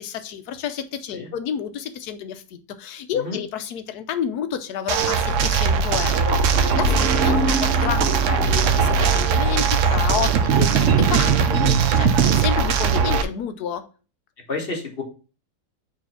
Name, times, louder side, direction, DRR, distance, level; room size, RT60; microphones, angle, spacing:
voice 1, 0.0-13.9, left 8 dB, 75° left, 10 dB, 1.2 m, -30 dB
sound 1, 4.9-13.2, right 6 dB, 60° right, 0.8 m, -19 dB
sound 2, 6.5-10.2, right 2 dB, 40° right, 2.0 m, -28 dB
voice 2, 14.5-15.0, left 3 dB, 35° left, 1 dB, 1.5 m, -31 dB
4.7 x 4.1 x 5.7 m, 0.35 s
omnidirectional pair, 1.7 m